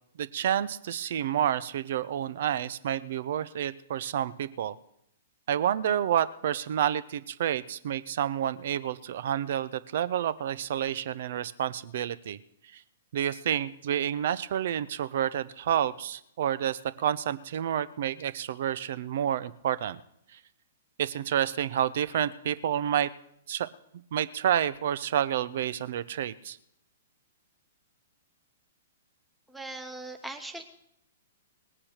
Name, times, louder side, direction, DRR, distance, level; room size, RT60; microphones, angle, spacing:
voice 1, 0.2-4.7 5.5-12.4 13.1-20.0 21.0-23.1 23.5-23.7 24.1-26.6, right 10 dB, 55° right, 17 dB, 0.8 m, -29 dB
voice 2, 29.5-30.6, right 2 dB, 5° right, 6 dB, 1.2 m, -40 dB
19.5 x 8.7 x 6.6 m, 0.77 s
figure-of-eight pair, 115°, 0 cm